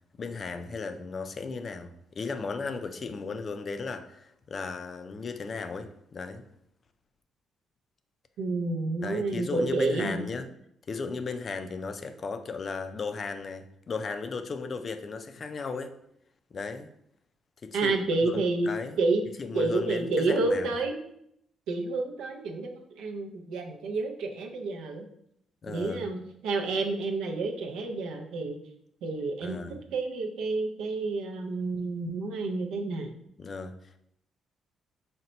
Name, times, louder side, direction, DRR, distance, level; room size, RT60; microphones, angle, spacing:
voice 1, 0.2-6.5 9.0-10.5 10.9-15.9 16.5-16.9 17.6-18.0 18.2-19.0 19.4-20.7 25.6-26.1 29.4-29.8 33.4-34.0, left 4 dB, 45° left, 9 dB, 0.4 m, -36 dB
voice 2, 8.4-10.2 17.7-18.7 19.0-19.3 19.5-21.0 21.7-22.7 22.9-25.0 25.7-28.6 29.0-29.6 29.9-33.1, right 3 dB, 85° right, 2 dB, 0.5 m, -29 dB
4.3 x 2.1 x 3.9 m, 0.74 s
cardioid pair, 90°, 0 cm